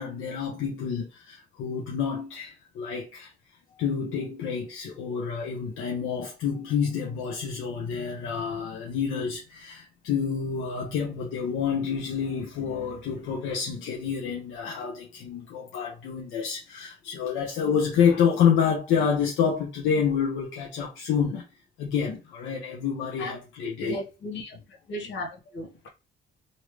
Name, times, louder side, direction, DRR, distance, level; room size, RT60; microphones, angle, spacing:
voice 1, 0.0-3.3 3.8-21.5 21.8-24.0, left 7 dB, 90° left, 0.8 m, -28 dB
voice 2, 23.8-24.5 24.9-25.9, equal, 70° left, 1.2 m, -35 dB
3.1 x 2.7 x 3.1 m
cardioid pair, 90°, 20 cm